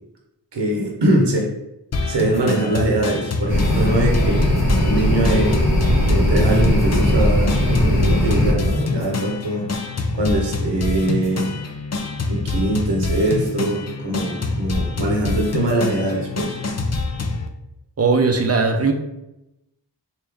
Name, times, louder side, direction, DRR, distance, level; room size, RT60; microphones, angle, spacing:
voice 1, 0.5-1.5 2.0-5.7 6.0-9.7 10.1-11.5 12.3-16.6, right 1 dB, 70° right, -1 dB, 0.8 m, -22 dB
sound 1, 1.9-17.5, left 3 dB, 40° left, 0.4 m, -26 dB
sound 2, 3.5-8.5, equal, 80° left, 1.0 m, -18 dB
voice 2, 18.0-18.9, right 4 dB, 35° right, 5 dB, 0.5 m, -18 dB
3.2 x 2.6 x 3.4 m, 0.90 s
wide cardioid pair, 40°, 43 cm